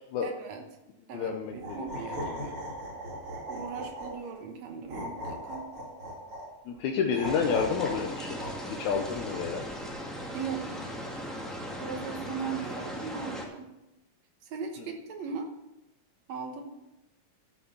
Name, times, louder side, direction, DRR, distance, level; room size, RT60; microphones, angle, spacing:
voice 1, 0.2-0.6 1.1-2.6 3.5-5.7 10.3-10.8 11.8-13.7 14.4-15.5 16.3-16.6, right 6 dB, 70° right, 4 dB, 2.3 m, -38 dB
voice 2, 1.1-1.5 6.7-8.4 8.8-9.7, left 6 dB, 80° left, 3 dB, 2.2 m, -29 dB
sound 1, 1.5-4.3 4.9-6.5 7.1-9.4, equal, 45° right, 3.1 m, -39 dB
sound 2, 7.2-13.4, equal, ahead, 1.5 m, -38 dB
12.0 x 6.9 x 7.0 m, 0.94 s
omnidirectional pair, 3.4 m